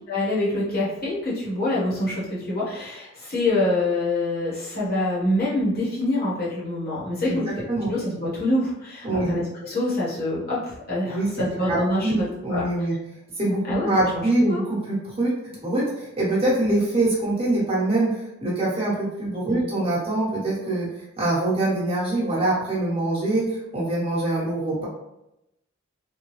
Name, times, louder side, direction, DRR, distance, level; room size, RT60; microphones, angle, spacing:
voice 1, 0.1-7.4 7.9-12.7 13.7-14.6 19.5-19.6, left 1 dB, 45° left, -8 dB, 1.4 m, -26 dB
voice 2, 11.5-12.9 13.4-15.3 15.6-20.9 21.2-24.8, right 2 dB, 25° right, -6 dB, 1.2 m, -24 dB
3.5 x 2.2 x 3.2 m, 0.88 s
head